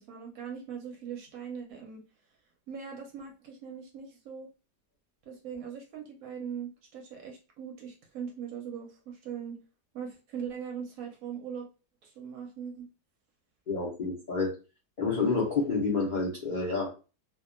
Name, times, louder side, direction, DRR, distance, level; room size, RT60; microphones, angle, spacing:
voice 1, 0.0-2.0 2.7-4.5 5.3-9.6 9.9-11.7 12.0-12.9, right 7 dB, 70° right, 1 dB, 0.9 m, -40 dB
voice 2, 13.7-14.5 15.0-16.9, left 4 dB, 90° left, -4 dB, 0.4 m, -29 dB
2.7 x 2.2 x 2.5 m, 0.32 s
omnidirectional pair, 1.8 m